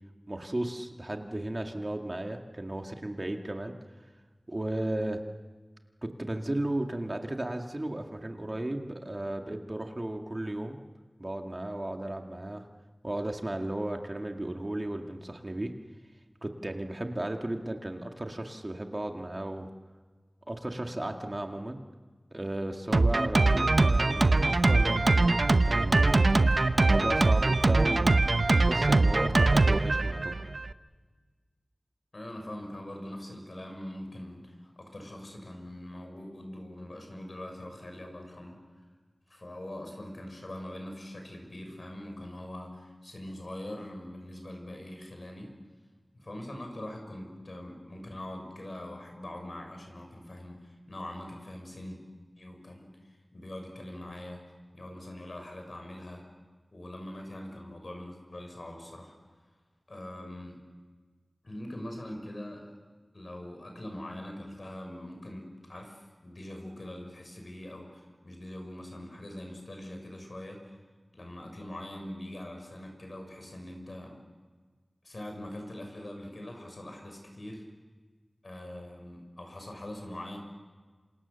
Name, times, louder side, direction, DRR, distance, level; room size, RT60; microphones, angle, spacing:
voice 1, 0.3-3.7 4.5-5.2 6.0-10.8 11.2-12.7 13.0-15.7 16.4-19.7 20.5-21.8 22.3-25.3 25.6-26.3 26.9-28.2 28.7-30.4, right 1 dB, 35° right, 3 dB, 2.0 m, -34 dB
Drum kit, 22.9-30.7, right 2 dB, 65° right, 0.8 m, -23 dB
voice 2, 32.1-38.6 39.3-45.5 46.1-52.0 52.4-54.4 54.7-56.2 56.7-59.1 59.9-60.6 61.4-62.7 63.1-70.8 71.1-74.2 75.0-77.6 78.4-80.4, left 1 dB, 60° left, 3 dB, 6.4 m, -42 dB
28.0 x 27.0 x 7.0 m, 1.4 s
wide cardioid pair, 65°, 0 cm